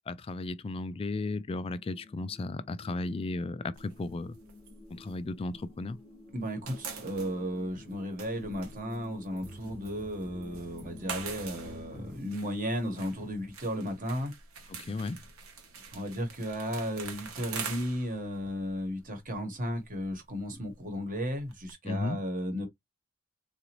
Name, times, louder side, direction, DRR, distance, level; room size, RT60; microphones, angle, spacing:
voice 1, 0.1-4.3 4.9-6.0 14.7-15.2 21.8-22.2, left 2 dB, 25° left, 0.3 m, -35 dB
sound 1, 1.7-12.2, left 1 dB, 5° right, 1.0 m, -50 dB
sound 2, 3.8-6.0 6.3-21.7, right 5 dB, 85° right, 0.9 m, -45 dB
voice 2, 6.3-14.3 15.9-22.7, equal, 40° right, 1.2 m, -34 dB
4.0 x 2.5 x 3.0 m
head